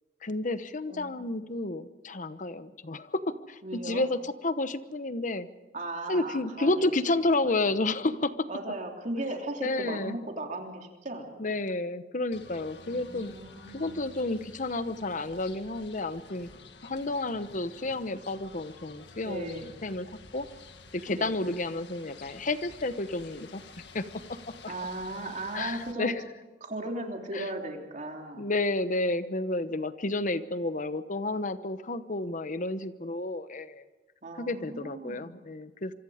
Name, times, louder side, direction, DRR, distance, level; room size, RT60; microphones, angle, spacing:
voice 1, 0.2-5.5 6.1-8.5 9.6-10.2 11.4-13.3 13.7-16.5 16.8-20.1 20.3-20.5 20.9-23.6 23.9-24.0 24.6-24.7 25.5-26.2 27.3-27.5 28.3-33.8 34.4-35.9, left 2 dB, 45° left, 12 dB, 1.0 m, -31 dB
voice 2, 0.9-1.3 3.6-4.1 5.7-6.9 7.4-7.5 8.5-11.5 12.8-14.0 19.2-19.8 21.1-21.4 24.7-26.1 26.6-28.5 34.2-35.5, right 2 dB, 45° right, 2 dB, 3.4 m, -37 dB
sound 1, 12.3-25.9, left 3 dB, 75° left, 1.8 m, -50 dB
26.5 x 24.5 x 5.0 m, 1.2 s
head